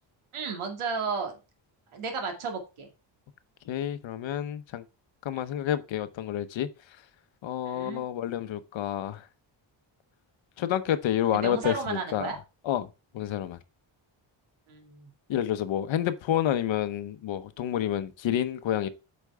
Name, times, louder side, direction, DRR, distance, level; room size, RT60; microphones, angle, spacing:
voice 1, 0.3-1.3 1.9-2.9 5.3-5.5 7.7-8.0 11.3-12.4 14.7-15.1, right 4 dB, 85° right, 2.3 m, -33 dB
voice 2, 3.7-4.8 5.2-6.7 7.4-9.2 10.6-12.3 12.7-12.9 13.1-13.6 15.3-18.9, left 11 dB, 70° left, 0.9 m, -29 dB
8.4 x 5.2 x 3.4 m
wide cardioid pair, 180°, 48 cm